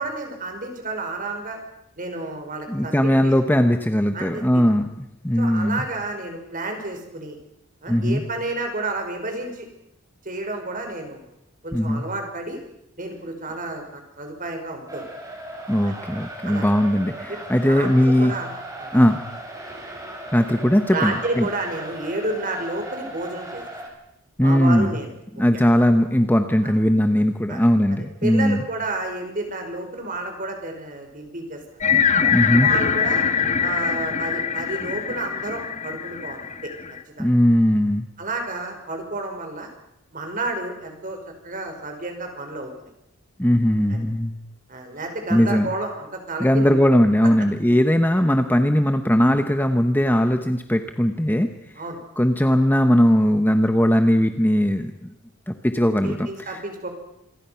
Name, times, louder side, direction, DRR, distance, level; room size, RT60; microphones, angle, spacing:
voice 1, 0.0-1.6 2.0-3.3 4.1-4.6 5.4-7.4 7.8-9.7 10.2-11.3 11.6-12.6 13.0-15.1 15.9-16.0 16.4-16.7 17.3-17.4 17.7-18.5 18.8-18.9 20.9-23.6 24.4-25.6 26.6-26.7 27.5-27.6 28.2-31.9 32.6-33.2 33.6-36.7 37.2-37.3 38.2-39.7 40.1-41.2 41.4-42.9 44.7-46.8 51.8-52.0 56.0-56.9, right 2 dB, 40° right, 4 dB, 5.3 m, -31 dB
voice 2, 2.7-5.9 7.9-8.2 11.7-12.0 15.7-18.3 18.9-19.2 20.3-21.5 24.4-25.0 25.4-28.6 32.3-32.7 37.2-38.1 43.4-44.3 45.3-45.7 46.4-51.5 52.2-55.1 55.5-56.6, equal, 10° left, 7 dB, 1.1 m, -19 dB
sound 1, 14.9-23.9, right 1 dB, 15° right, 4.7 m, -37 dB
sound 2, 31.8-37.0, left 7 dB, 35° left, 1.3 m, -23 dB
27.0 x 22.0 x 5.9 m, 0.81 s
head